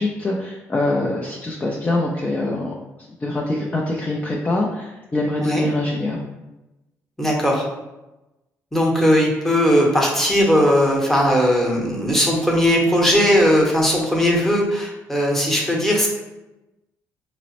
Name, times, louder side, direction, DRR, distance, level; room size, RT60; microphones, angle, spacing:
voice 1, 0.0-2.7 3.2-6.2, left 2 dB, 25° left, -2 dB, 0.4 m, -24 dB
voice 2, 7.2-7.7 8.7-16.1, equal, 5° left, -2 dB, 0.9 m, -18 dB
4.0 x 2.0 x 2.9 m, 1.0 s
supercardioid pair, 75°, 6 cm